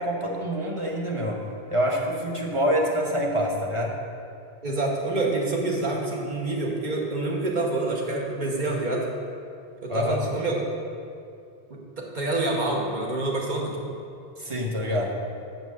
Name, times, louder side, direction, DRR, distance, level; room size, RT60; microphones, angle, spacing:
voice 1, 0.0-1.4 1.7-3.9 9.9-10.2 14.4-15.2, equal, 30° right, -1 dB, 1.1 m, -26 dB
voice 2, 4.6-9.1 9.8-10.6 11.7-13.8, right 2 dB, 50° right, -2 dB, 1.4 m, -27 dB
6.6 x 6.1 x 7.4 m, 2.5 s
omnidirectional pair, 1.0 m